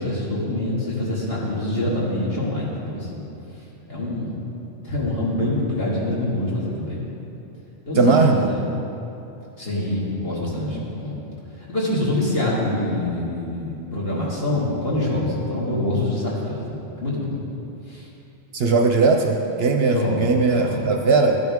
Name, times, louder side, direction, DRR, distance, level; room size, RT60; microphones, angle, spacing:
voice 1, 0.0-3.3 3.9-7.1 7.9-8.7 9.6-11.2 11.6-17.4 17.9-18.1 19.9-20.3 20.5-20.9, left 1 dB, 50° left, -6 dB, 2.4 m, -25 dB
voice 2, 8.0-8.4 18.5-21.4, right 4 dB, 60° right, 3 dB, 0.8 m, -18 dB
13.0 x 9.3 x 3.6 m, 2.9 s
omnidirectional pair, 1.3 m